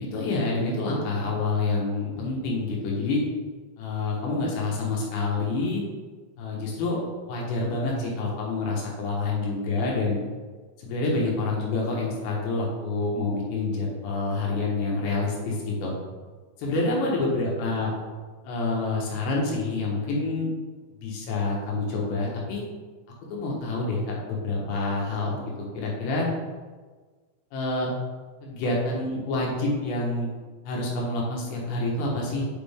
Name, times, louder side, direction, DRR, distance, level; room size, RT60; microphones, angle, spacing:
voice 1, 0.0-3.2 3.8-5.8 6.4-7.0 7.3-10.2 10.8-15.9 16.6-17.9 18.4-20.5 20.9-22.6 23.3-25.4 25.8-26.3 27.5-27.9 28.4-30.3 30.7-32.5, left 3 dB, 75° left, -3 dB, 3.4 m, -27 dB
7.6 x 5.2 x 3.6 m, 1.4 s
omnidirectional pair, 5.3 m